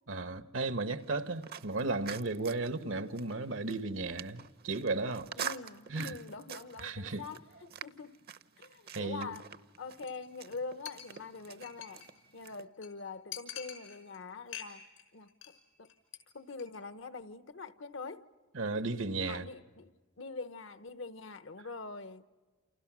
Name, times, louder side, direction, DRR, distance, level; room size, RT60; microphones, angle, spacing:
voice 1, 0.1-5.3 5.9-6.2 6.8-7.2 8.9-9.3 18.5-19.5, right 3 dB, 75° right, 1.2 m, -35 dB
sound 1, 1.0-12.6, right 8 dB, 50° right, 0.8 m, -46 dB
voice 2, 5.3-8.2 8.6-9.5 9.8-15.9 16.3-18.3 19.3-22.2, left 4 dB, 65° left, 1.0 m, -44 dB
Chink clink, 10.1-10.3 10.5-10.6 10.9-12.2 12.5-12.6 12.8-12.9 13.3-14.2 14.5-15.0 15.3-15.6 15.8-16.2 16.5-16.6, left 10 dB, 85° left, 5.6 m, -46 dB
29.0 x 28.5 x 6.2 m
head